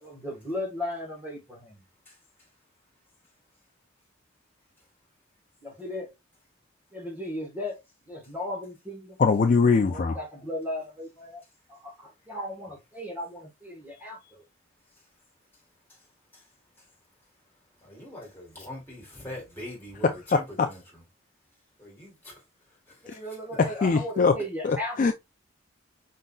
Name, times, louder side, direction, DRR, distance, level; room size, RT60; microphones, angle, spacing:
voice 1, 0.0-1.8 5.6-6.1 6.9-7.8 8.1-9.2 9.9-11.4 11.7-14.4 23.0-25.1, left 1 dB, 10° right, 1.3 m, -36 dB
voice 2, 9.2-10.2 20.0-20.7 23.1-23.2 23.6-24.3 24.6-25.1, left 4 dB, 40° left, 0.3 m, -22 dB
voice 3, 17.8-20.8 21.8-22.4 22.9-23.2, left 1 dB, 10° left, 2.2 m, -42 dB
5.3 x 3.8 x 2.3 m
head